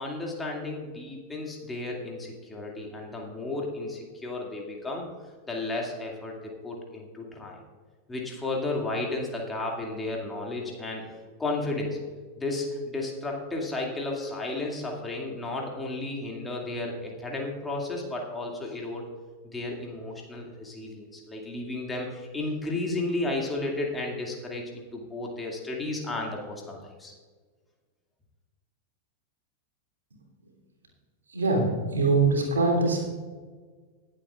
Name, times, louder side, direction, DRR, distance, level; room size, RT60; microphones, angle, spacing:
voice 1, 0.0-5.1 5.5-7.6 8.1-11.0 11.4-12.0 12.4-19.1 19.5-27.1, left 2 dB, 10° left, -1 dB, 2.3 m, -33 dB
voice 2, 31.3-31.7 31.9-33.0, right 3 dB, 70° right, 0 dB, 3.0 m, -22 dB
21.5 x 7.9 x 2.4 m, 1.5 s
figure-of-eight pair, 90°, 0 cm